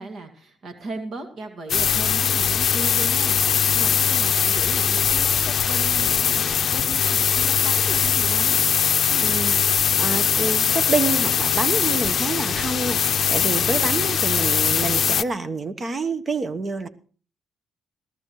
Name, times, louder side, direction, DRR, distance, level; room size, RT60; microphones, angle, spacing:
voice 1, 0.0-8.6, right 2 dB, 55° right, 6 dB, 2.2 m, -36 dB
sound 1, 1.7-15.2, left 8 dB, 55° left, 0.6 m, -21 dB
voice 2, 9.1-9.6 10.0-16.9, right 3 dB, 35° right, 12 dB, 1.1 m, -27 dB
21.0 x 12.5 x 3.1 m, 0.40 s
cardioid pair, 90°, 0 cm